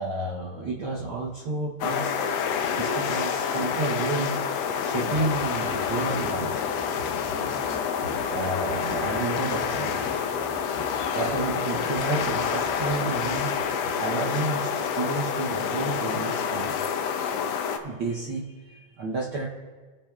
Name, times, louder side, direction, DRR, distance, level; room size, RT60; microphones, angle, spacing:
voice 1, 0.0-4.5 4.8-6.6 7.0-7.1 8.3-10.0 11.1-16.8 17.8-19.5, right 3 dB, 80° right, -4 dB, 1.1 m, -31 dB
sound 1, 1.8-17.8, left 7 dB, 80° left, 1.5 m, -28 dB
sound 2, 5.1-13.8, left 1 dB, 35° right, 0.4 m, -45 dB
sound 3, 5.6-10.5, left 2 dB, 55° right, 3.8 m, -50 dB
21.0 x 8.7 x 2.4 m, 1.3 s
omnidirectional pair, 3.6 m